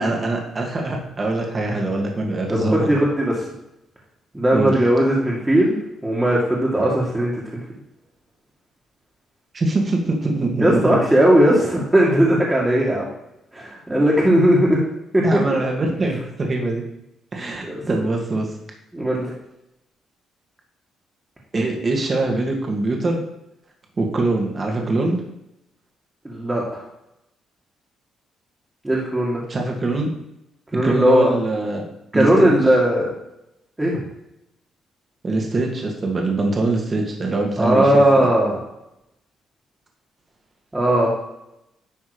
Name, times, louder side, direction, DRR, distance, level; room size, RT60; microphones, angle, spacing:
voice 1, 0.0-2.9 4.5-4.7 9.5-11.0 15.2-16.8 17.3-18.5 21.5-23.2 24.0-25.2 29.5-30.1 30.8-31.8 32.1-32.5 35.2-38.3, right 2 dB, 35° right, 1 dB, 1.9 m, -23 dB
voice 2, 2.5-3.4 4.3-5.8 6.0-7.4 10.6-13.1 13.5-14.8 15.1-15.2 17.6-18.0 18.9-19.3 26.2-26.8 28.8-29.4 30.7-31.3 32.1-33.1 33.8-34.0 37.6-38.6 40.7-41.1, right 1 dB, 15° right, -4 dB, 2.0 m, -18 dB
10.5 x 3.6 x 5.0 m, 0.85 s
cardioid pair, 90°, 0 cm